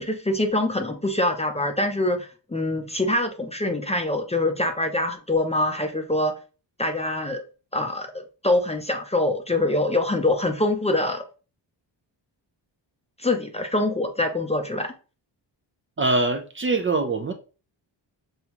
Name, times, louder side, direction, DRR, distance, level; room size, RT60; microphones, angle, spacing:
voice 1, 0.0-6.4 6.8-7.4 7.7-11.2 13.2-14.9, left 2 dB, 15° left, 0.6 m, -24 dB
voice 2, 16.0-17.3, right 3 dB, 30° right, 0.6 m, -23 dB
5.4 x 2.3 x 3.0 m
cardioid pair, 75°, 44 cm